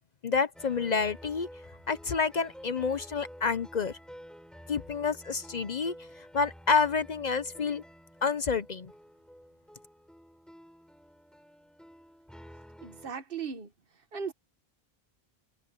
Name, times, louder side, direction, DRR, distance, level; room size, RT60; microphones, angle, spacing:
voice 1, 0.2-1.5 1.9-3.9 4.7-5.9 6.3-7.8 8.2-8.9, left 5 dB, 50° left, 0.7 m, -28 dB
sound 1, 0.5-13.1, equal, ahead, 4.6 m, -51 dB
voice 2, 12.8-13.7 14.1-14.3, right 6 dB, 65° right, 1.4 m, -37 dB
omnidirectional pair, 1.0 m